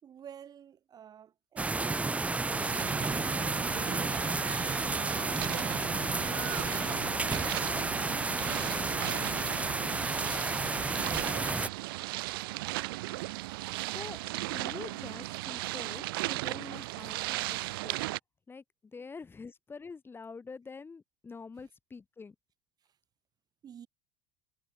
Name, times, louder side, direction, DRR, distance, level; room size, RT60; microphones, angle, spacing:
voice 1, 0.0-3.2 23.6-23.9, right 9 dB, 35° right, 5.1 m, -50 dB
sound 1, 1.6-11.7, right 3 dB, 10° right, 1.1 m, -31 dB
sound 2, 2.5-18.2, right 20 dB, 85° right, 0.5 m, -37 dB
voice 2, 6.2-8.8 13.9-18.1 18.5-22.3, left 4 dB, 20° left, 5.0 m, -47 dB
supercardioid pair, 115°, 12 cm